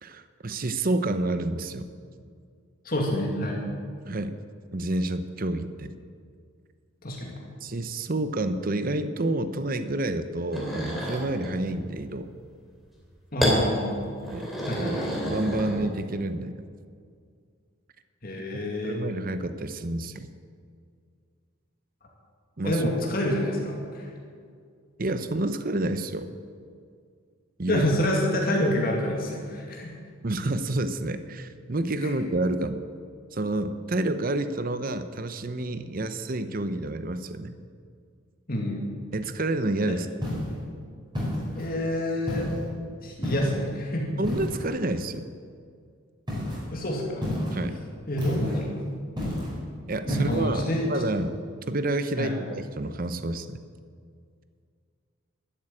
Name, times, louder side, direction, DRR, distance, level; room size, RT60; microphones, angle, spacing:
voice 1, 0.0-1.9 4.1-4.3 4.7-5.9 7.6-12.3 14.3-14.5 14.8-16.6 18.8-20.3 22.6-22.8 25.0-26.3 27.6-27.8 30.2-32.8 33.3-37.5 39.1-40.1 44.2-45.3 47.5-47.8 49.8-51.4 51.7-53.6, right 2 dB, 40° right, 10 dB, 0.7 m, -29 dB
voice 2, 2.8-3.6 7.0-7.3 13.3-14.1 14.6-15.1 18.2-19.0 22.6-24.1 27.7-30.0 38.5-38.9 41.5-42.5 43.0-44.1 46.7-47.3 48.1-48.8 50.1-51.1 52.2-52.4, left 1 dB, 45° left, -1 dB, 2.2 m, -27 dB
sound 1, 10.5-11.6 13.4-13.6 14.2-16.1, equal, ahead, 3.0 m, -29 dB
sound 2, 40.2-40.6 41.1-41.7 42.3-42.7 43.2-43.6 44.2-44.7 46.3-46.6 47.2-47.6 48.2-48.6 49.2-49.6 50.1-50.4, left 1 dB, 20° right, 5.4 m, -30 dB
12.5 x 12.0 x 8.6 m, 2.2 s
head